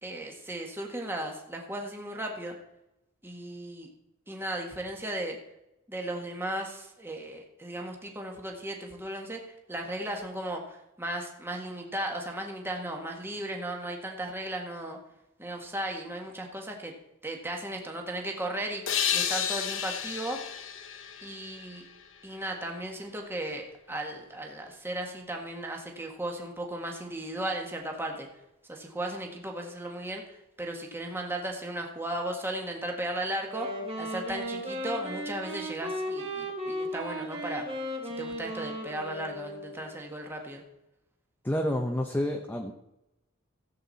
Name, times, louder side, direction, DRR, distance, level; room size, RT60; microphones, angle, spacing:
voice 1, 0.0-2.5 3.2-3.9 4.3-5.4 5.9-9.4 9.7-15.0 15.4-16.9 17.2-18.8 19.1-20.4 21.2-21.9 22.2-28.3 28.7-33.7 34.0-37.7 38.0-40.6, right 1 dB, 10° right, 1 dB, 1.7 m, -36 dB
sound 1, 18.9-22.4, left 9 dB, 65° left, 1.0 m, -32 dB
Wind instrument woodwind instrument, 33.3-39.9, equal, 30° right, 2.7 m, -36 dB
voice 2, 41.4-42.7, left 1 dB, 10° left, 2 dB, 0.9 m, -29 dB
15.5 x 8.1 x 4.1 m, 0.88 s
head